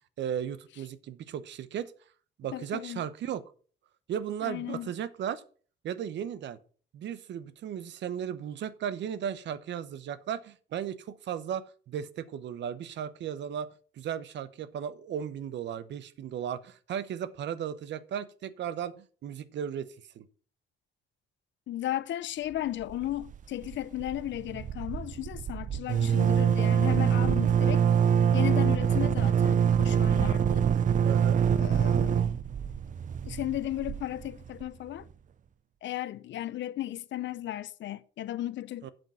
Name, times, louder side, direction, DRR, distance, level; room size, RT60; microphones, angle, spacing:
voice 1, 0.2-1.9 2.4-3.4 4.1-5.4 5.8-6.6 6.9-13.7 14.0-19.9 20.1-20.3 31.0-31.4 38.8-38.9, right 9 dB, 80° right, 0.8 m, -35 dB
voice 2, 2.5-3.0 4.4-4.9 21.7-27.8 28.3-30.7 31.5-32.3 33.2-35.1 35.8-38.9, left 13 dB, 85° left, 0.7 m, -35 dB
sound 1, 22.8-23.3 23.6-23.7 24.0-34.7, right 8 dB, 45° right, 0.5 m, -25 dB
8.0 x 7.4 x 5.7 m
wide cardioid pair, 155°, 18 cm